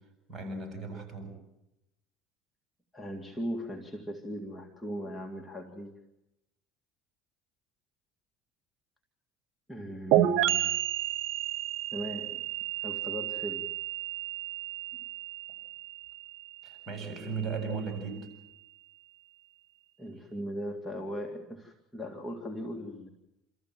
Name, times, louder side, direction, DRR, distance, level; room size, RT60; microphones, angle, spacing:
voice 1, 0.3-1.4 16.6-18.3, right 4 dB, 30° right, 5 dB, 7.8 m, -36 dB
voice 2, 2.9-5.9 9.7-10.8 11.9-12.5 12.8-13.7 20.0-23.1, equal, 10° left, 0 dB, 2.4 m, -38 dB
sound 1, 10.1-17.7, right 13 dB, 70° right, 1.0 m, -31 dB
28.0 x 14.5 x 7.7 m, 0.90 s
supercardioid pair, 100°, 0 cm